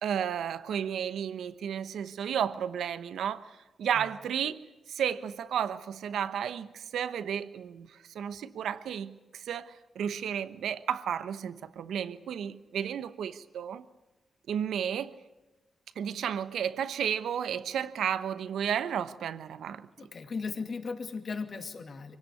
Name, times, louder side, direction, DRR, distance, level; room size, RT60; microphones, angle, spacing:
voice 1, 0.0-4.6 4.9-13.9 14.5-15.2 16.0-19.9, right 8 dB, 90° right, 1.0 m, -33 dB
voice 2, 20.0-22.2, left 4 dB, 55° left, 2.4 m, -37 dB
24.0 x 17.0 x 9.6 m
cardioid pair, 80°, 0 cm